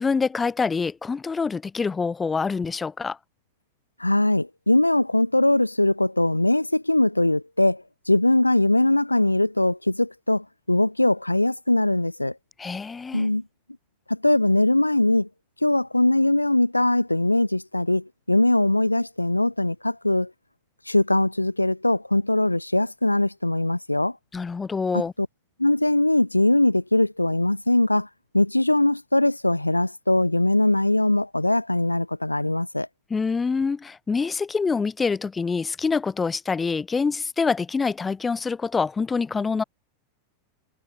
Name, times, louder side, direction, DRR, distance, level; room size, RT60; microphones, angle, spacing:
voice 1, 0.0-3.2 12.6-13.3 24.3-25.1 33.1-39.6, left 5 dB, 15° left, 7.9 m, -26 dB
voice 2, 4.0-12.4 13.1-13.4 14.1-15.3 15.6-20.3 20.9-24.2 25.6-28.1 28.3-32.9, left 1 dB, 85° left, 3.0 m, -21 dB
figure-of-eight pair, 90°, 0 cm